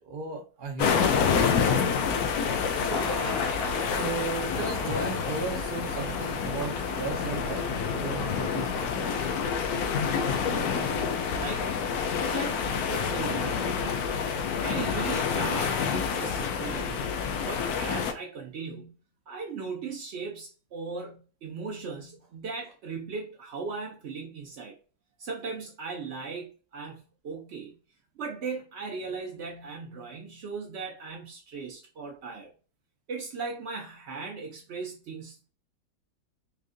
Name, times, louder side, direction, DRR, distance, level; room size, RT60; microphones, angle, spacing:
voice 1, 0.0-2.0 3.9-9.1, right 4 dB, 45° right, 0.7 m, -36 dB
sound 1, 0.8-18.1, left 6 dB, 70° left, 0.9 m, -28 dB
Thunder / Rain, 1.8-16.0, left 1 dB, 25° left, 0.3 m, -41 dB
voice 2, 10.0-11.8 12.3-14.1 14.6-17.1 17.4-18.9 19.3-24.8 25.2-27.7 28.2-32.5 33.1-35.5, right 4 dB, 80° right, 0.6 m, -38 dB
4.5 x 2.4 x 2.5 m
omnidirectional pair, 1.9 m